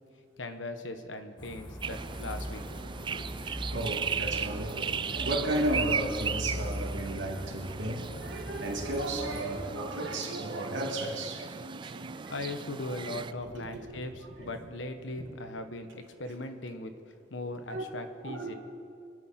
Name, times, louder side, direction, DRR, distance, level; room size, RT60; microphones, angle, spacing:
voice 1, 0.4-2.8 3.1-3.3 12.3-16.9 17.3-18.5, left 2 dB, 80° left, 7 dB, 1.3 m, -39 dB
sound 1, 1.4-9.4, equal, 25° left, 1.7 m, -40 dB
sound 2, 1.8-13.3, right 6 dB, 25° right, 0.3 m, -37 dB
voice 2, 3.4-12.3 12.8-12.9 13.4-14.0 14.4-14.5 17.7-17.8 18.2-18.6, right 1 dB, 80° right, 0 dB, 2.8 m, -34 dB
26.0 x 11.5 x 4.4 m, 2.4 s
head